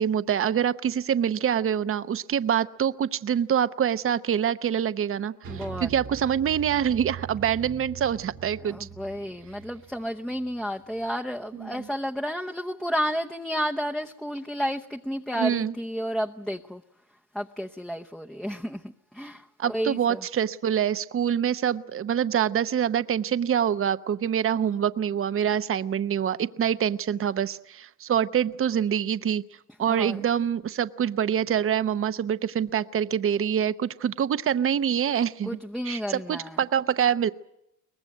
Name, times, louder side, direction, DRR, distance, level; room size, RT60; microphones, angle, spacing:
voice 1, 0.0-8.9 11.5-11.7 15.4-15.7 19.6-29.4 29.8-35.6 35.8-37.3, right 9 dB, 45° right, 13 dB, 0.8 m, -25 dB
sound 1, 5.4-11.1, right 8 dB, 65° right, 1.5 m, -42 dB
voice 2, 5.5-5.9 8.6-16.8 17.3-20.2 29.9-30.2 35.4-36.6, equal, ahead, 2 dB, 0.8 m, -31 dB
23.0 x 19.5 x 9.3 m, 0.83 s
cardioid pair, 90°, 30 cm